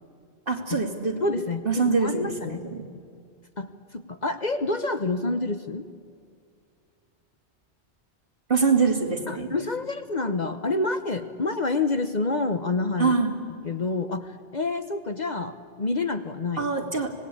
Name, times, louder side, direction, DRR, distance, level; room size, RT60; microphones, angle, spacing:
voice 1, 0.5-1.2 1.6-2.8 8.5-9.5 13.0-13.4 16.6-17.1, right 4 dB, 50° right, 2 dB, 2.9 m, -24 dB
voice 2, 1.2-2.6 3.6-5.8 9.3-13.1 13.6-16.7, left 3 dB, 40° left, 9 dB, 1.0 m, -28 dB
25.5 x 19.0 x 8.5 m, 2.2 s
omnidirectional pair, 1.2 m